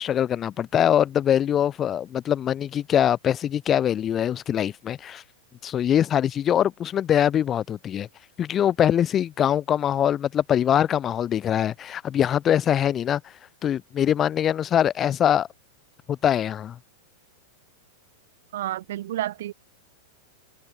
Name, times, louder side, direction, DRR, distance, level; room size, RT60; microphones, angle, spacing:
voice 1, 0.0-5.2 5.6-8.1 8.4-13.2 13.6-15.5 16.1-16.8, left 10 dB, 25° left, 0.6 m, -23 dB
voice 2, 18.5-19.5, right 13 dB, 60° right, 0.7 m, -30 dB
figure-of-eight pair, 95°, 0 cm